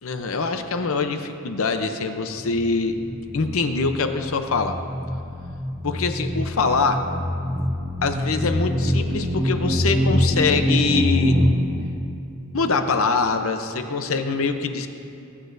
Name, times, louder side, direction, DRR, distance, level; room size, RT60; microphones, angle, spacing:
voice 1, 0.0-3.0 3.3-4.8 5.8-7.0 8.0-11.4 12.5-14.9, left 4 dB, 65° left, 7 dB, 0.7 m, -24 dB
sound 1, 2.4-11.5, left 1 dB, 50° right, 1.5 m, -24 dB
21.5 x 9.9 x 2.6 m, 2.7 s
head